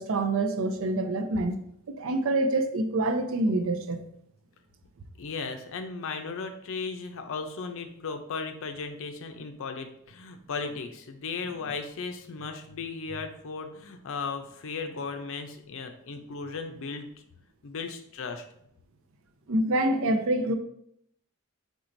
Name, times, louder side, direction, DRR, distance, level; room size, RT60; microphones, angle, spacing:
voice 1, 0.0-1.6 2.0-4.0 19.5-20.5, right 2 dB, 65° right, 0.5 m, -26 dB
voice 2, 5.2-17.1 17.6-18.4, left 4 dB, 65° left, 0.5 m, -36 dB
4.5 x 4.0 x 2.6 m
head